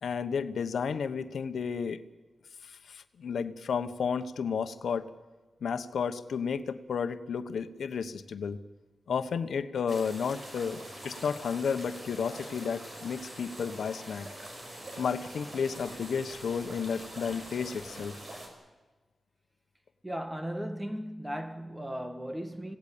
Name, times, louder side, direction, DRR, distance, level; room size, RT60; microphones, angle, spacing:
voice 1, 0.0-2.0 2.6-5.1 5.6-8.6 9.1-14.3 15.0-18.2, left 6 dB, 90° left, 1.1 m, -32 dB
sound 1, 9.9-18.5, right 1 dB, 35° right, 5.7 m, -44 dB
voice 2, 20.0-22.8, equal, 10° right, 1.7 m, -36 dB
26.0 x 17.5 x 8.6 m
wide cardioid pair, 120°, 0 cm